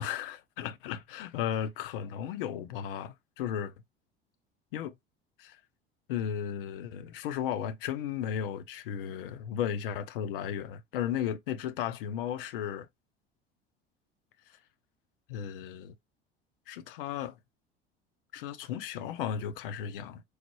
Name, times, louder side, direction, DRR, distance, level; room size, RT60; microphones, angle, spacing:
voice 1, 0.0-3.7 4.7-4.9 5.4-5.6 6.1-12.9 14.5-14.6 15.3-15.9 16.7-17.4 18.3-20.2, left 9 dB, 60° left, 0.6 m, -35 dB
4.7 x 2.0 x 3.0 m
figure-of-eight pair, 65°, 31 cm